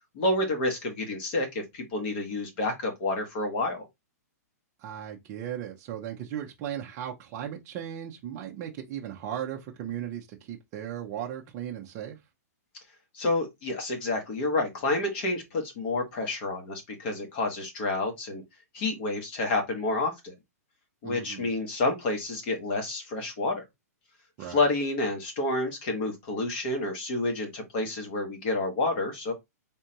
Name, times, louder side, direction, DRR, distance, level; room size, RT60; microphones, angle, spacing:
voice 1, 0.1-3.9 13.1-18.4 18.7-20.3 21.0-23.6 24.4-29.3, left 2 dB, 40° left, 1.4 m, -29 dB
voice 2, 4.8-12.2 21.0-21.5 24.4-24.6, right 10 dB, 30° right, 0.6 m, -37 dB
3.7 x 3.3 x 2.8 m
hypercardioid pair, 160°, 9 cm